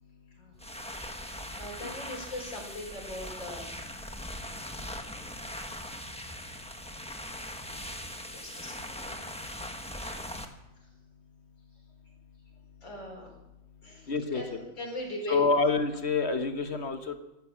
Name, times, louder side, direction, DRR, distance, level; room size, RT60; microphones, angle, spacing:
sound 1, 0.5-10.4, left 1 dB, 5° left, 0.8 m, -40 dB
voice 1, 1.2-3.6 8.1-9.2 10.8-10.9 12.0-12.1 12.8-13.3 13.8-15.4, left 1 dB, 70° left, -1 dB, 5.2 m, -41 dB
voice 2, 14.1-14.4 15.3-17.2, left 4 dB, 40° left, 7 dB, 1.1 m, -27 dB
15.0 x 11.5 x 7.4 m, 0.98 s
omnidirectional pair, 2.1 m